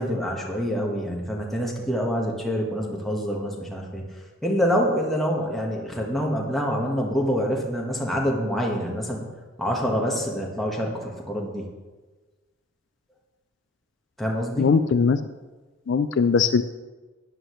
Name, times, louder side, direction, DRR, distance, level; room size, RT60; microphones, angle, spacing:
voice 1, 0.0-4.0 4.4-9.3 9.6-11.7 14.2-14.7, equal, ahead, -2 dB, 1.4 m, -26 dB
voice 2, 14.6-15.2 15.9-16.6, left 5 dB, 60° left, 11 dB, 0.4 m, -20 dB
12.5 x 9.6 x 3.2 m, 1.3 s
head